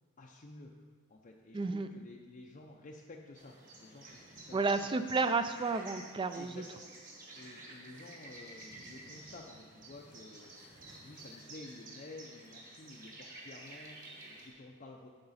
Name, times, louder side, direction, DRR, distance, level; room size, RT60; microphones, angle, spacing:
voice 1, 0.2-0.7 1.1-4.9 6.3-6.9 7.3-10.5 11.0-15.1, left 2 dB, 35° left, 0 dB, 0.5 m, -52 dB
voice 2, 1.5-1.9 4.5-6.6, right 4 dB, 20° right, 10 dB, 0.3 m, -31 dB
sound 1, 3.4-14.5, right 2 dB, 40° right, 1.9 m, -51 dB
8.8 x 6.7 x 4.1 m, 1.5 s
head